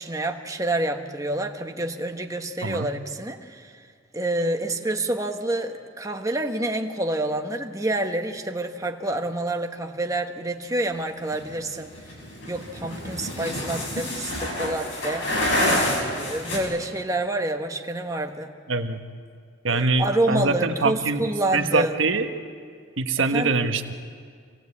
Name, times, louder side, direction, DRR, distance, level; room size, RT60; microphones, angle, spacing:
voice 1, 0.0-3.7 4.1-11.9 12.5-15.3 16.1-18.5 19.7-21.9 23.2-23.5, right 1 dB, 15° right, 4 dB, 1.3 m, -28 dB
sound 1, 11.3-16.6, left 1 dB, 70° left, 6.3 m, -27 dB
voice 2, 18.7-19.0 19.6-22.3 23.0-23.9, right 3 dB, 75° right, 6 dB, 1.3 m, -24 dB
27.0 x 18.5 x 8.4 m, 2.1 s
head